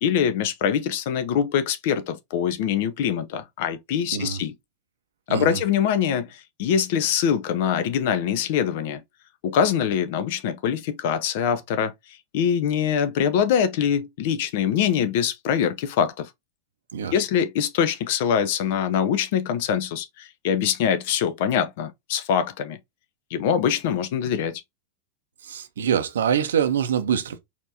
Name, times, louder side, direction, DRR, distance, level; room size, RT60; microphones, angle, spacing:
voice 1, 0.0-4.5 5.3-9.0 9.4-11.9 12.3-16.3 17.1-22.8 23.3-24.5, left 8 dB, 50° left, 0.7 m, -23 dB
voice 2, 5.3-5.6 16.9-17.1 25.4-27.4, right 8 dB, 65° right, 0.7 m, -24 dB
4.4 x 2.9 x 2.8 m
figure-of-eight pair, 90°, 0 cm